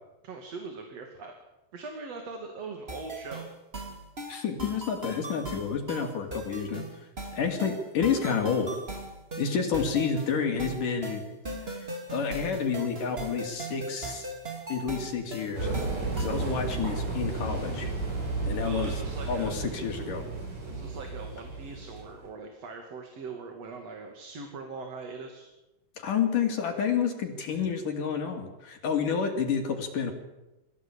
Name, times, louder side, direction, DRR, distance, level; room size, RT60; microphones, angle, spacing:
voice 1, 0.2-1.3 1.7-3.5 18.6-19.6 20.7-25.5, right 4 dB, 50° right, 4 dB, 3.5 m, -41 dB
sound 1, 2.9-16.5, right 2 dB, 20° right, 2.9 m, -39 dB
voice 2, 4.3-6.8 7.3-8.8 9.4-11.2 11.6-14.3 14.7-15.7 16.2-17.9 18.4-18.9 19.3-20.2 26.0-30.1, left 6 dB, 75° left, 3 dB, 4.2 m, -29 dB
sound 2, 15.5-22.3, right 3 dB, 80° right, 9.3 m, -33 dB
25.5 x 17.0 x 8.7 m, 1.0 s
omnidirectional pair, 3.7 m